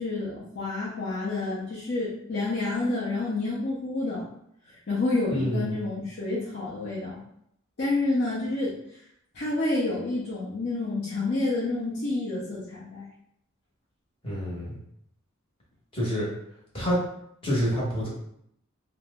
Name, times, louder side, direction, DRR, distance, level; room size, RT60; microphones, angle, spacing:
voice 1, 0.0-4.2 4.9-7.2 7.8-8.8 9.3-13.1, left 2 dB, 55° left, -8 dB, 0.7 m, -29 dB
voice 2, 5.3-5.9 14.2-14.8 15.9-16.3 16.7-17.0 17.4-18.1, equal, 25° left, -5 dB, 1.0 m, -27 dB
2.9 x 2.0 x 3.4 m, 0.73 s
head